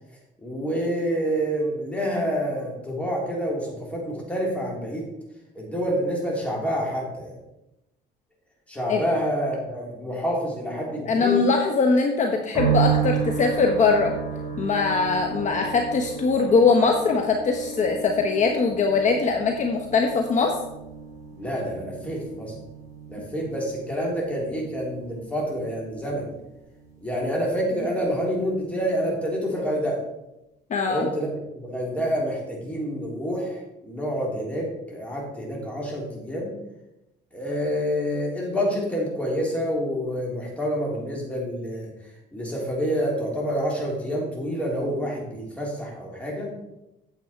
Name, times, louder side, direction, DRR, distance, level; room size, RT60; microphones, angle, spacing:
voice 1, 0.4-5.1 5.6-7.4 8.7-11.4 21.3-22.6 23.1-26.3 27.0-30.0 30.9-31.3 31.6-36.6 37.3-41.9 42.3-46.5, equal, 10° left, -3 dB, 3.6 m, -28 dB
voice 2, 11.0-14.1 14.6-20.5 30.7-31.1, left 4 dB, 45° left, 3 dB, 1.1 m, -21 dB
sound 1, 12.5-27.8 28.1-28.9, right 7 dB, 20° right, 4.0 m, -33 dB
9.3 x 7.2 x 4.5 m, 0.92 s
cardioid pair, 110°, 17 cm